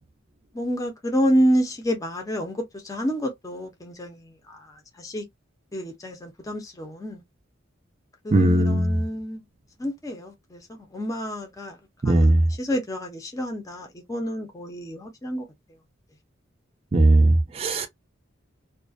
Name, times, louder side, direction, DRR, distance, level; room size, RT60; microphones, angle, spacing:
voice 1, 0.5-5.2 5.7-7.2 8.2-9.4 9.8-10.6 10.9-11.8 12.0-12.3 12.6-15.4, equal, 15° left, 0.5 m, -28 dB
voice 2, 8.3-8.9 12.0-12.4 16.9-17.9, right 1 dB, 30° right, 0.4 m, -18 dB
2.3 x 2.1 x 2.4 m
head